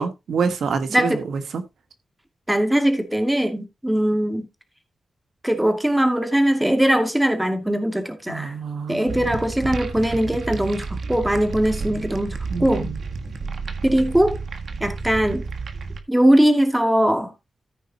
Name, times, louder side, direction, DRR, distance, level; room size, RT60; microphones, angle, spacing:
voice 1, 0.0-1.6 8.3-9.3 12.5-13.0, right 5 dB, 85° right, 1.4 m, -27 dB
voice 2, 2.5-4.5 5.4-8.5 8.9-12.9 13.8-14.4 14.8-15.4 16.1-17.3, right 1 dB, 10° right, 2.3 m, -20 dB
sound 1, 9.1-16.0, right 4 dB, 65° right, 1.6 m, -31 dB
14.5 x 5.2 x 4.2 m
cardioid pair, 90°, 0 cm